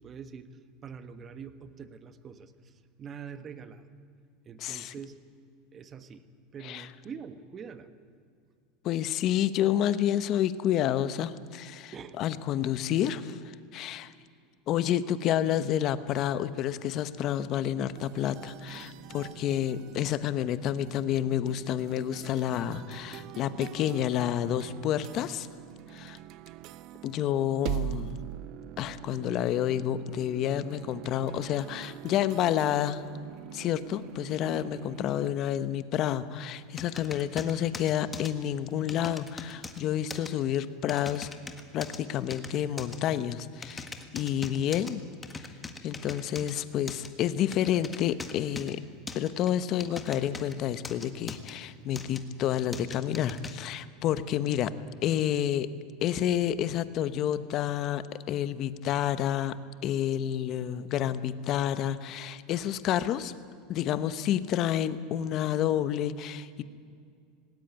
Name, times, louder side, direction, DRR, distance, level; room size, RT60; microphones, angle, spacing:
voice 1, 0.0-3.8 4.4-5.2 5.7-6.2 6.5-7.9 11.9-12.2, right 6 dB, 30° right, 11 dB, 1.4 m, -44 dB
voice 2, 4.6-4.9 6.6-6.9 8.8-14.1 14.7-25.5 25.9-26.2 27.0-28.2 28.8-33.0 33.5-41.3 41.7-45.0 45.8-48.8 49.1-54.7 55.0-55.7 56.0-59.6 59.8-63.3 63.7-66.6, left 11 dB, 45° left, 14 dB, 1.0 m, -29 dB
sound 1, 17.9-35.3, right 14 dB, 50° right, 0.7 m, -43 dB
sound 2, 36.8-38.3 38.9-39.8 40.1-40.3 40.9-42.0 42.3-43.0 43.6-44.9 45.2-46.5 46.9-47.1 47.5-48.7 49.1-50.5 50.8-51.5 51.9-52.2 52.7-53.5, left 4 dB, 15° left, 1.6 m, -41 dB
19.5 x 17.5 x 9.3 m, 2.2 s
supercardioid pair, 130°, 0 cm